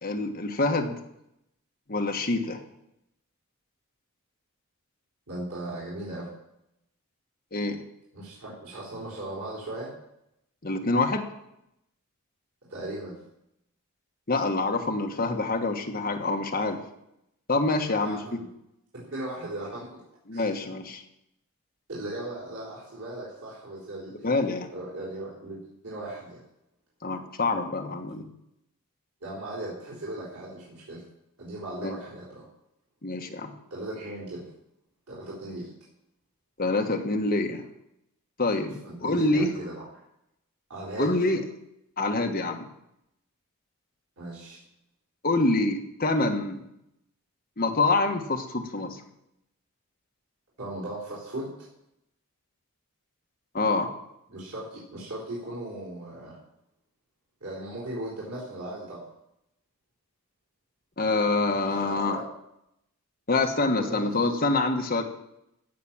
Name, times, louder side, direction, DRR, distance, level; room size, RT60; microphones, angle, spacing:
voice 1, 0.0-0.9 1.9-2.6 7.5-7.8 10.6-11.3 14.3-16.8 17.5-18.2 20.3-21.0 24.2-24.7 27.0-28.3 31.8-31.9 33.0-33.5 36.6-37.6 38.4-39.5 41.0-41.4 42.0-42.7 45.2-46.6 47.6-49.0 53.5-53.9 61.0-62.2 63.3-65.0, left 2 dB, 40° left, 3 dB, 1.3 m, -26 dB
voice 2, 5.3-6.3 8.1-9.9 12.7-13.2 17.8-18.5 18.9-20.0 20.3-20.5 21.9-24.3 24.7-26.4 29.2-31.0 31.4-32.4 33.7-34.5 35.1-35.7 38.8-40.0 40.7-41.2 44.2-44.6 50.6-51.5 54.3-56.4 57.4-59.1 61.5-62.2 63.5-64.2, right 1 dB, 90° right, -6 dB, 4.0 m, -38 dB
15.5 x 5.9 x 7.4 m, 0.82 s
head